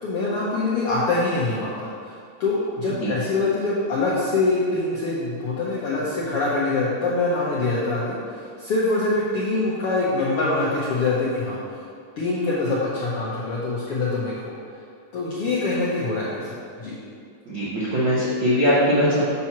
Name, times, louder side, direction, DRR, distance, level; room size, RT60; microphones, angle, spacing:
voice 1, 0.0-2.1 2.4-11.6 12.2-14.5 15.1-17.0, left 3 dB, 75° left, -7 dB, 1.3 m, -24 dB
voice 2, 17.5-19.2, equal, 85° right, -8 dB, 1.0 m, -21 dB
7.6 x 2.9 x 5.8 m, 2.3 s
omnidirectional pair, 3.7 m